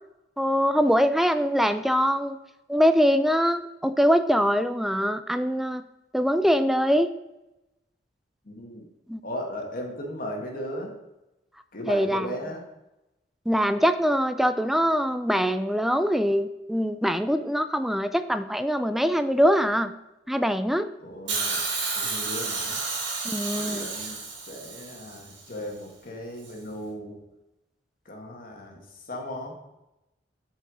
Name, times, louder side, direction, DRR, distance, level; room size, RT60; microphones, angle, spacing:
voice 1, 0.4-2.4 2.7-5.8 6.1-7.1 9.1-9.2 11.9-12.3 13.5-19.9 20.3-20.9 23.2-23.9, equal, ahead, 11 dB, 0.3 m, -23 dB
voice 2, 8.4-8.8 9.2-10.9 11.7-12.6 21.0-21.6 21.9-22.8 23.5-27.2 28.0-29.6, equal, 50° left, 1 dB, 1.5 m, -37 dB
Hiss, 21.3-25.4 26.4-26.5, right 4 dB, 85° right, 2.1 m, -31 dB
7.8 x 4.7 x 4.8 m, 0.95 s
head